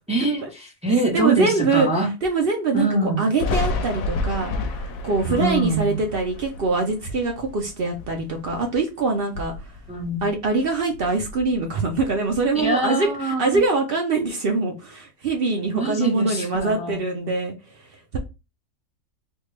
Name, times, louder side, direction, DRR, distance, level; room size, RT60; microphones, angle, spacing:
voice 1, 0.1-2.1 2.7-3.3 5.3-6.0 9.9-10.2 12.5-13.6 15.7-17.0, right 2 dB, 10° right, 0.3 m, -24 dB
voice 2, 1.1-1.9 2.2-9.5 10.2-17.5 18.1-18.2, right 3 dB, 65° right, 0.6 m, -23 dB
Thunder, 3.4-8.8 9.2-10.6 10.9-12.6, left 3 dB, 70° left, 0.9 m, -31 dB
3.5 x 2.3 x 3.2 m
omnidirectional pair, 1.6 m